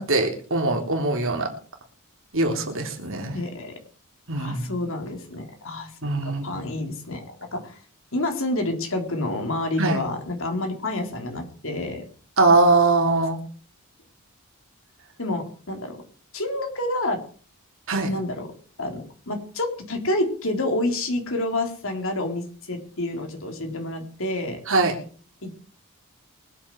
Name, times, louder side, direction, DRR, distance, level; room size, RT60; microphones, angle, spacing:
voice 1, 0.0-1.5 2.3-3.4 4.3-4.7 6.0-6.6 9.8-10.0 12.4-13.4 17.9-18.1 24.7-24.9, right 3 dB, 60° right, 3 dB, 3.7 m, -21 dB
voice 2, 3.3-3.7 4.3-5.9 6.2-7.8 8.1-12.0 15.2-16.0 16.3-17.2 18.1-18.5 18.8-24.6 25.4-25.6, left 1 dB, 65° left, 4 dB, 3.9 m, -28 dB
24.0 x 8.8 x 4.8 m, 0.43 s
head